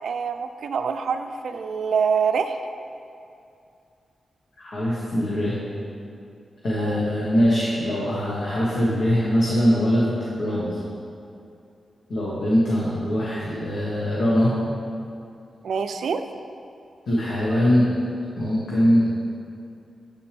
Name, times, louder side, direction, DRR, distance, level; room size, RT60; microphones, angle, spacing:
voice 1, 0.0-2.6 6.8-7.1 15.6-16.3, right 6 dB, 80° right, 8 dB, 0.3 m, -25 dB
voice 2, 4.6-5.6 6.6-10.1 10.4-10.8 12.1-14.5 17.1-17.9 18.4-19.1, equal, 80° left, -8 dB, 1.2 m, -22 dB
8.1 x 5.9 x 3.4 m, 2.5 s
wide cardioid pair, 135°, 0 cm